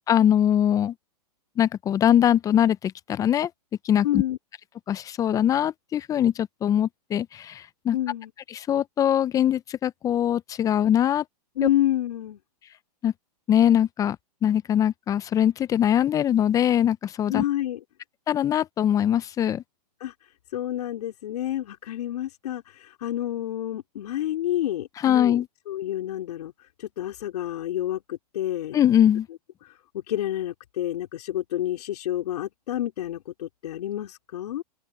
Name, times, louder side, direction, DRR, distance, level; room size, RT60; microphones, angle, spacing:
voice 1, 0.1-0.9 1.6-3.5 3.8-4.1 4.9-8.0 8.5-11.2 11.6-11.7 13.0-13.1 13.5-14.2 14.4-17.4 18.3-19.6 25.0-25.5 28.7-29.3, left 10 dB, 15° left, 0.5 m, -22 dB
voice 2, 4.0-4.4 7.9-8.3 11.6-12.4 17.3-17.8 20.0-20.1 20.5-25.4 25.7-26.5 26.8-28.8 29.6-29.7 30.1-34.6, left 13 dB, 65° left, 2.6 m, -29 dB
hypercardioid pair, 135°, 21 cm